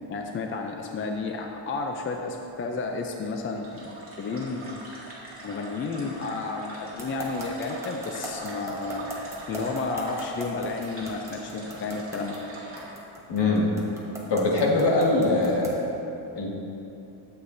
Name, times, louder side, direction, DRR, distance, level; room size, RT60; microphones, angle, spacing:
voice 1, 0.1-4.9 5.4-9.1 9.5-12.4, left 3 dB, 30° left, 2 dB, 0.4 m, -32 dB
sound 1, 3.6-12.9, right 1 dB, 25° right, 2.0 m, -42 dB
sound 2, 7.0-15.8, right 1 dB, 5° right, 1.1 m, -37 dB
voice 2, 13.3-13.7 14.3-15.8 16.3-16.5, left 2 dB, 55° left, -3 dB, 1.7 m, -22 dB
12.5 x 8.1 x 2.6 m, 2.9 s
cardioid pair, 160°, 48 cm